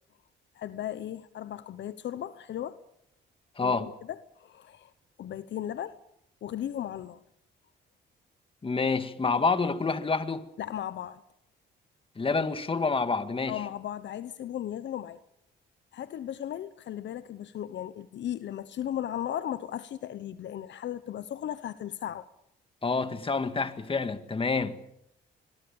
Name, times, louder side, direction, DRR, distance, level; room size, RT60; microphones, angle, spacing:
voice 1, 0.5-2.8 3.6-4.9 5.2-6.0 6.4-7.2 10.6-11.2 13.5-15.2 15.9-22.3, left 11 dB, 65° left, 1.0 m, -36 dB
voice 2, 3.6-3.9 8.6-10.5 12.2-13.6 22.8-24.8, left 4 dB, 25° left, 2.1 m, -28 dB
26.0 x 22.5 x 7.1 m
cardioid pair, 90°, 20 cm